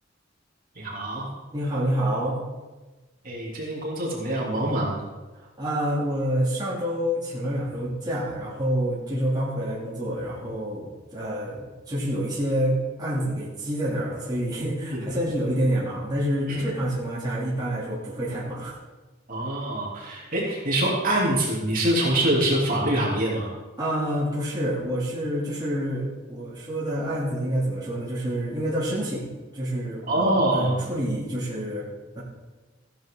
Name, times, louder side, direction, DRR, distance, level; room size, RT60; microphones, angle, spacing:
voice 1, 0.7-1.3 3.2-4.9 14.9-15.0 16.5-16.6 19.3-23.5 30.1-30.8, right 1 dB, 45° right, -4 dB, 3.2 m, -25 dB
voice 2, 1.5-2.4 5.4-18.8 23.8-31.8 32.1-32.2, equal, 20° right, -7 dB, 2.9 m, -27 dB
15.0 x 10.5 x 3.9 m, 1.2 s
head